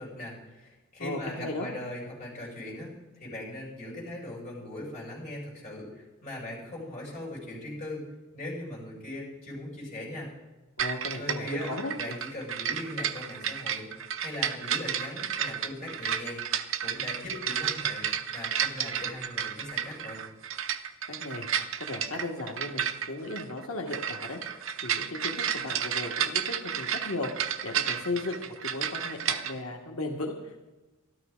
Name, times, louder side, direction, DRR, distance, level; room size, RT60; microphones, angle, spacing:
voice 1, 0.0-8.0 8.3-10.3 11.2-13.9 14.2-16.4 16.8-20.2, left 1 dB, 35° left, -3 dB, 6.1 m, -39 dB
voice 2, 1.0-1.7 10.8-12.2 21.1-21.5 21.8-30.7, left 2 dB, 90° left, 1 dB, 1.4 m, -36 dB
sound 1, 10.8-29.5, right 8 dB, 65° right, 0.7 m, -32 dB
13.0 x 12.5 x 5.0 m, 1.1 s
head